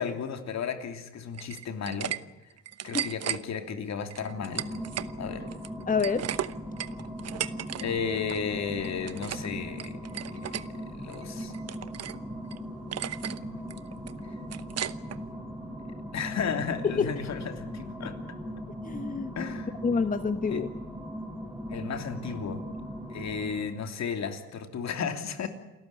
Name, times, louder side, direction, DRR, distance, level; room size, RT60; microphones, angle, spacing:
voice 1, 0.0-2.1 2.8-4.8 5.1-5.5 7.8-10.0 10.3-11.5 13.4-13.6 15.8-18.2 19.3-19.7 20.5-20.7 21.7-22.6 23.1-25.5, left 6 dB, 65° left, 7 dB, 3.1 m, -34 dB
sound 1, 1.3-2.2 2.5-3.4 4.1-5.1 5.5-7.8 8.1-8.4 8.8-9.5 9.8-10.6 11.1-12.2 12.5-12.6 12.9-13.4 13.7-15.2, right 10 dB, 55° right, 1.1 m, -35 dB
sound 2, 4.2-23.9, equal, ahead, 5.8 m, -39 dB
voice 2, 5.9-6.3 17.0-17.1 18.8-19.3 19.8-20.7, left 5 dB, 25° left, 11 dB, 1.2 m, -27 dB
28.5 x 14.0 x 9.9 m, 1.1 s
cardioid pair, 90°, 30 cm